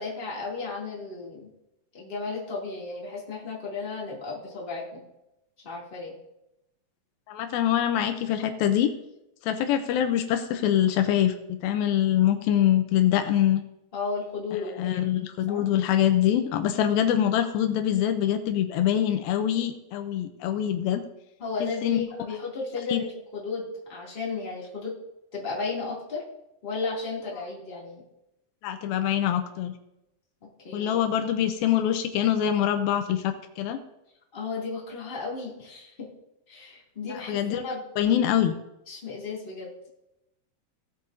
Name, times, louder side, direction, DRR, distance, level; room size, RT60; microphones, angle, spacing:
voice 1, 0.0-1.5 1.9-5.0 5.6-6.1 13.9-15.0 15.5-15.6 21.4-24.9 25.3-26.2 26.6-28.0 30.6-31.0 34.3-36.1 36.5-37.9 38.9-39.7, left 4 dB, 20° left, -5 dB, 2.0 m, -34 dB
voice 2, 7.3-8.9 9.4-13.6 14.6-21.0 21.6-22.0 22.9-23.0 28.6-29.7 30.7-33.8 37.1-37.6 38.0-38.6, left 10 dB, 85° left, 8 dB, 2.4 m, -24 dB
17.5 x 8.4 x 2.6 m, 0.88 s
omnidirectional pair, 4.3 m